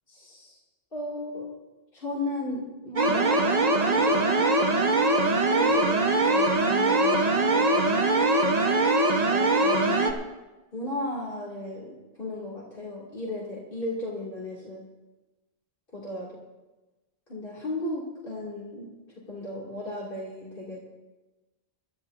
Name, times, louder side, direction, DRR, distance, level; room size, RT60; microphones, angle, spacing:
voice 1, 0.1-0.6 0.9-1.5 1.9-3.5 3.9-4.4 5.5-8.3 9.1-10.0 10.7-14.8 15.9-16.3 17.3-18.9 19.3-20.8, left 1 dB, 55° left, -6 dB, 2.9 m, -35 dB
sound 1, 3.0-10.1, right 2 dB, 40° right, 1.2 m, -22 dB
24.5 x 12.5 x 2.7 m, 1.1 s
omnidirectional pair, 1.1 m